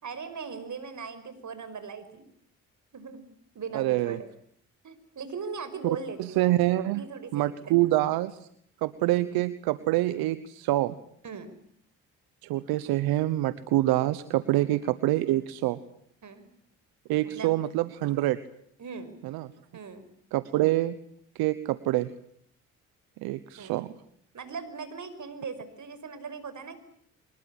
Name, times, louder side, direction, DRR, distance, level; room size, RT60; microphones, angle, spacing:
voice 1, 0.0-2.3 2.9-3.3 3.5-4.3 4.8-6.5 6.9-7.7 9.0-9.3 11.2-11.5 14.5-14.7 16.2-16.5 17.2-17.6 18.8-19.2 19.7-20.1 23.6-23.8 24.3-26.8, right 5 dB, 55° right, 12 dB, 5.5 m, -39 dB
voice 2, 3.7-4.2 6.2-7.0 7.3-8.5 8.8-10.9 12.4-15.8 17.1-18.4 19.2-19.5 20.3-21.0 21.3-22.1 23.2-23.9, right 16 dB, 80° right, 15 dB, 1.1 m, -26 dB
24.5 x 21.5 x 10.0 m, 0.67 s
hypercardioid pair, 55°, 36 cm